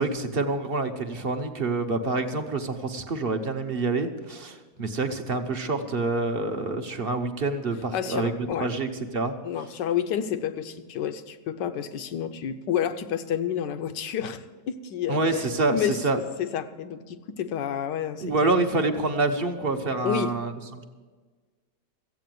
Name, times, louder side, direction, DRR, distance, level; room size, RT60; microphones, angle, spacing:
voice 1, 0.0-8.3 8.6-9.3 15.1-16.2 18.2-20.8, right 3 dB, 40° right, 6 dB, 0.9 m, -27 dB
voice 2, 7.9-8.7 9.4-16.0 16.4-18.5 20.0-20.3, left 9 dB, 85° left, 10 dB, 1.5 m, -30 dB
14.5 x 8.4 x 9.2 m, 1.4 s
omnidirectional pair, 1.8 m